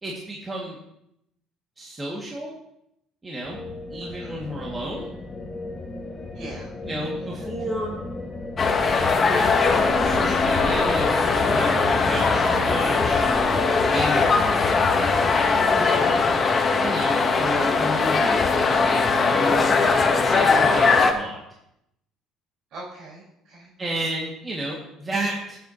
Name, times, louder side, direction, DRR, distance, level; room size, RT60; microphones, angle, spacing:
voice 1, 0.0-0.8 1.8-2.5 3.2-3.6 3.9-5.1 6.8-8.0 9.3-13.2 13.9-15.5 16.8-19.8 20.1-21.4 23.8-25.6, right 1 dB, 20° right, -4 dB, 2.2 m, -32 dB
sound 1, 3.4-16.3, left 2 dB, 15° left, 1.3 m, -35 dB
voice 2, 4.0-4.4 6.3-6.7 17.2-17.4 22.7-23.7, right 2 dB, 60° right, -6 dB, 4.8 m, -42 dB
sound 2, 8.6-21.1, left 4 dB, 30° left, 1.1 m, -20 dB
16.5 x 8.1 x 3.0 m, 0.80 s
cardioid pair, 105°, 0 cm